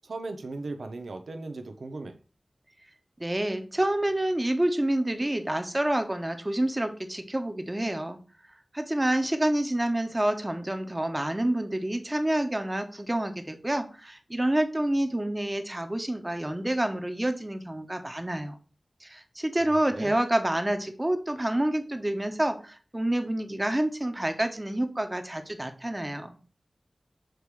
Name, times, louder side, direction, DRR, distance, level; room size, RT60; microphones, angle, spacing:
voice 1, 0.0-2.2 19.7-20.2, right 3 dB, 90° right, 6 dB, 0.7 m, -37 dB
voice 2, 3.2-8.2 8.7-18.5 19.0-26.4, right 1 dB, 20° right, 7 dB, 1.1 m, -28 dB
7.6 x 3.3 x 4.8 m, 0.36 s
wide cardioid pair, 55°, 0 cm